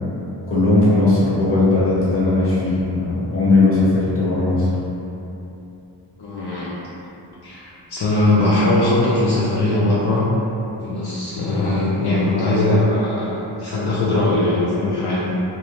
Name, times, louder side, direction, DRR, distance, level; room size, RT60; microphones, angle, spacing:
voice 1, 0.5-4.7, left 2 dB, 30° left, -9 dB, 0.7 m, -17 dB
voice 2, 6.2-6.7 7.4-10.3 10.8-15.3, left 2 dB, 65° left, -8 dB, 0.5 m, -20 dB
2.5 x 2.0 x 2.9 m, 2.9 s
wide cardioid pair, 145°, 44 cm